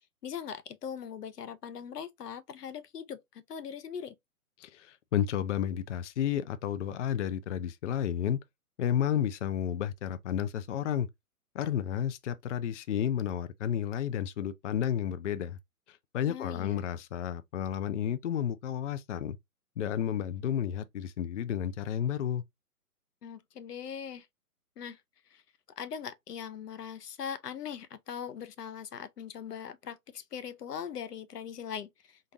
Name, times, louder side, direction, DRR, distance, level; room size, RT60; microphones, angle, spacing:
voice 1, 0.2-4.1 16.3-16.8 23.2-24.3 24.8-25.0 25.3-25.4 25.8-32.2, left 8 dB, 85° left, 0.7 m, -40 dB
voice 2, 4.6-8.4 8.8-11.1 11.5-15.6 15.9-19.4 19.8-22.4, left 9 dB, 55° left, 0.5 m, -31 dB
3.9 x 2.6 x 2.3 m
hypercardioid pair, 140°, 46 cm